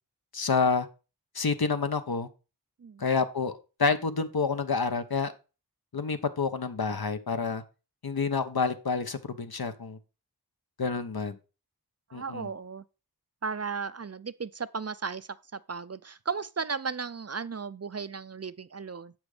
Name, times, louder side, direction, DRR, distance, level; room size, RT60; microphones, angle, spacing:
voice 1, 0.3-0.9 1.3-2.3 3.0-3.5 3.8-5.3 5.9-7.6 8.0-10.0 10.8-11.4 12.1-12.5, left 4 dB, 65° left, 1.0 m, -28 dB
voice 2, 12.1-12.8 13.4-19.1, right 5 dB, 40° right, 0.5 m, -35 dB
8.0 x 6.1 x 4.9 m
wide cardioid pair, 65°, 39 cm